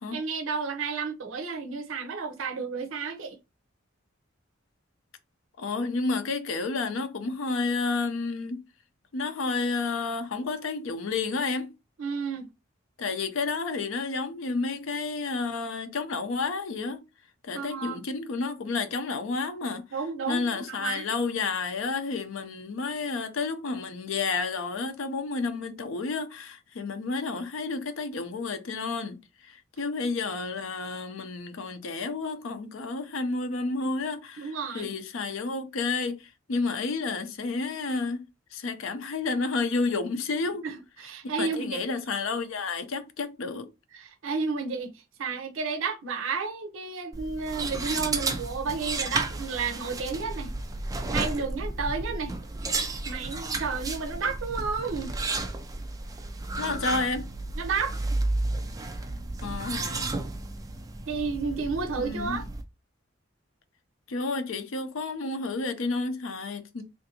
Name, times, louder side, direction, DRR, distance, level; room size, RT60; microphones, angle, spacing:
voice 1, 0.1-3.4 12.0-12.5 17.5-18.0 19.9-21.0 34.4-34.9 40.6-41.8 43.9-50.5 51.1-52.4 53.1-55.3 57.6-58.0 61.1-62.4, right 5 dB, 85° right, 0.6 m, -32 dB
voice 2, 5.6-8.6 9.1-11.7 13.0-17.0 17.4-19.8 20.3-38.2 38.5-40.6 41.4-43.7 56.6-57.3 59.4-60.2 62.0-62.4 64.1-66.8, left 4 dB, 85° left, 0.6 m, -31 dB
sound 1, 47.1-62.6, right 2 dB, 20° right, 0.4 m, -32 dB
3.4 x 2.5 x 2.8 m
head